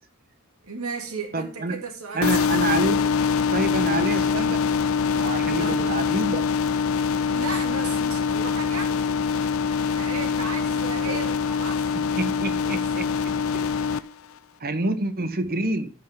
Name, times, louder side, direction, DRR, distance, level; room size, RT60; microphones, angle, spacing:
voice 1, 0.6-2.7 5.2-6.1 7.3-9.2 9.7-11.8 12.6-12.8 14.8-14.9, right 4 dB, 80° right, 2.6 m, -35 dB
voice 2, 1.3-1.8 2.1-3.0 3.5-4.6 5.1-6.4 11.0-11.2 12.2-13.1 13.5-13.6 14.6-15.9, right 2 dB, 45° right, 1.2 m, -27 dB
sound 1, 2.2-14.0, left 6 dB, 65° left, 0.5 m, -24 dB
13.5 x 5.9 x 3.6 m
head